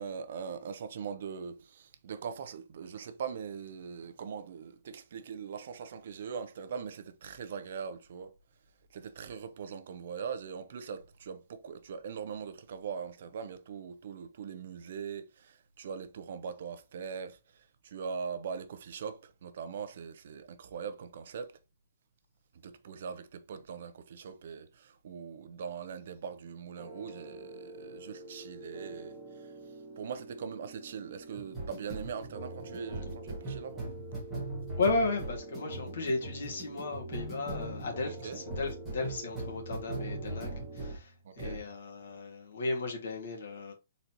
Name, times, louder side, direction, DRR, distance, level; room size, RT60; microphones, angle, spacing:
voice 1, 0.0-8.4 8.9-21.6 22.6-29.5 30.0-33.9 38.0-38.4 41.2-41.6, right 6 dB, 45° right, 0.6 m, -41 dB
sound 1, 26.8-41.0 41.4-41.7, right 2 dB, ahead, 1.6 m, -41 dB
voice 2, 34.8-43.7, left 3 dB, 55° left, 1.9 m, -34 dB
4.1 x 3.9 x 2.9 m
hypercardioid pair, 180°, 0 cm